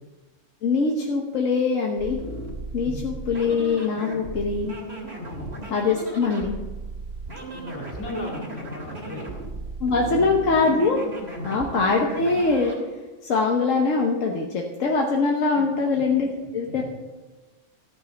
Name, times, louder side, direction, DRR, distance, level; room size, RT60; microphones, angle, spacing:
voice 1, 0.6-2.2 2.7-4.7 5.7-6.6 9.8-11.0 11.4-12.7 13.2-16.8, left 4 dB, 85° left, 1 dB, 1.4 m, -23 dB
sound 1, 2.0-12.8, right 2 dB, 55° right, 3.0 m, -36 dB
voice 2, 7.5-9.3 9.9-10.3 11.3-11.5 15.5-16.0 16.7-16.9, left 1 dB, 65° left, -1 dB, 2.9 m, -37 dB
13.5 x 6.1 x 7.0 m, 1.2 s
omnidirectional pair, 1.3 m